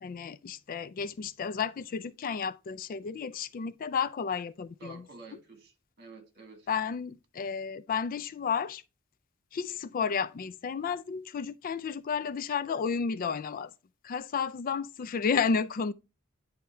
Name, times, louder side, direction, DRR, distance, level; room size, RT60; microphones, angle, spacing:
voice 1, 0.0-5.0 6.7-8.8 9.5-13.7 14.0-15.9, left 6 dB, 45° left, 0.3 m, -32 dB
voice 2, 4.8-6.7, right 3 dB, 50° right, 1.8 m, -50 dB
10.0 x 3.5 x 4.3 m
head